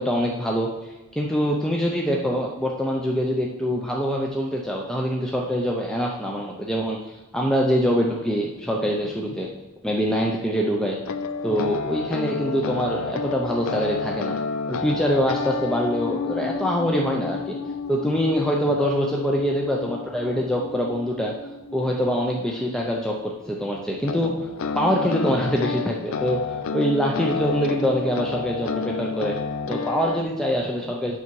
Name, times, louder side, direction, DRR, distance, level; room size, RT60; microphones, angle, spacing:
voice 1, 0.0-9.5 9.8-11.0 11.4-14.4 14.7-17.6 17.9-21.3 21.7-24.5 24.7-26.4 26.7-29.4 29.7-31.2, equal, 5° left, -1 dB, 0.5 m, -24 dB
sound 1, 11.0-23.0 24.0-30.2, left 4 dB, 70° left, 0.5 m, -30 dB
8.4 x 5.7 x 4.7 m, 1.1 s
head